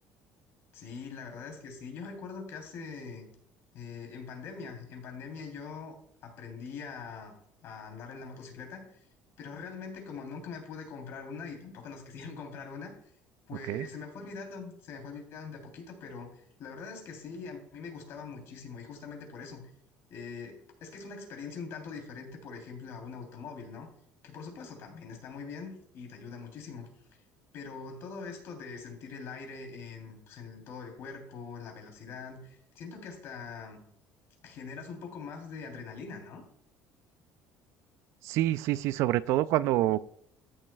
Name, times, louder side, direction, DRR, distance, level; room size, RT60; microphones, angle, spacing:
voice 1, 0.7-3.2 3.7-7.3 7.6-9.0 9.4-12.9 13.5-19.6 20.1-23.9 24.2-26.9 27.5-33.8 34.4-36.4, left 5 dB, 60° left, 3.2 m, -43 dB
voice 2, 38.2-40.0, right 14 dB, 70° right, 0.4 m, -27 dB
14.5 x 7.3 x 2.3 m
cardioid pair, 135°, 5 cm